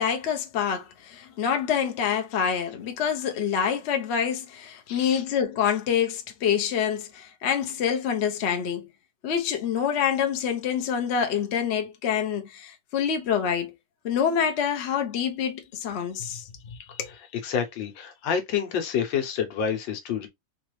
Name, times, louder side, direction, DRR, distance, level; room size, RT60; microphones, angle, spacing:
voice 1, 0.0-8.9 9.2-13.7 14.0-17.1, left 8 dB, 50° left, 0.8 m, -26 dB
voice 2, 4.9-5.2 16.7-17.0 17.3-20.3, left 7 dB, 90° left, 1.6 m, -28 dB
4.2 x 2.5 x 3.0 m
omnidirectional pair, 2.0 m